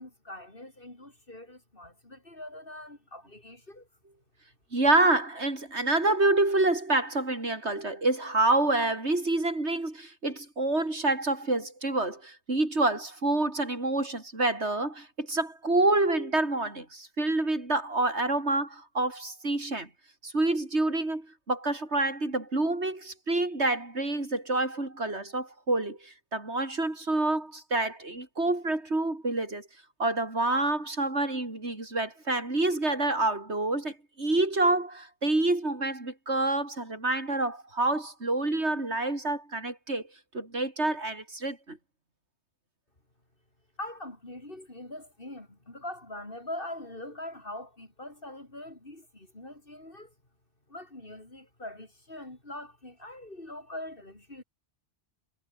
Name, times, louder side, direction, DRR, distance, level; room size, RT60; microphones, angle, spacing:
voice 1, 0.0-3.9 43.8-50.1 50.7-54.4, left 1 dB, 55° left, 5.1 m, -42 dB
voice 2, 4.7-19.9 20.2-29.7 30.0-40.1 40.3-41.8, right 2 dB, 85° right, 5.1 m, -27 dB
omnidirectional pair, 1.1 m